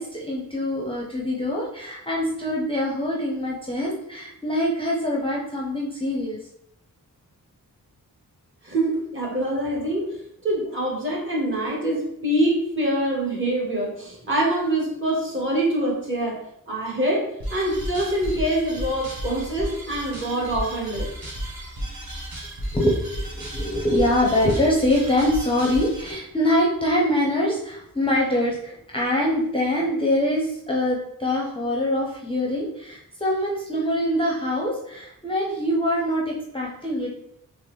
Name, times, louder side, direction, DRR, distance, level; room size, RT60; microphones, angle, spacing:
voice 1, 0.0-6.4 22.7-37.1, left 1 dB, 15° left, -4 dB, 0.6 m, -24 dB
voice 2, 8.6-10.2 10.4-16.4 16.7-21.1, right 1 dB, 35° right, -4 dB, 1.3 m, -25 dB
sound 1, 17.4-26.1, right 1 dB, 80° right, 1.2 m, -34 dB
3.8 x 2.9 x 3.1 m, 0.75 s
wide cardioid pair, 135°, 35 cm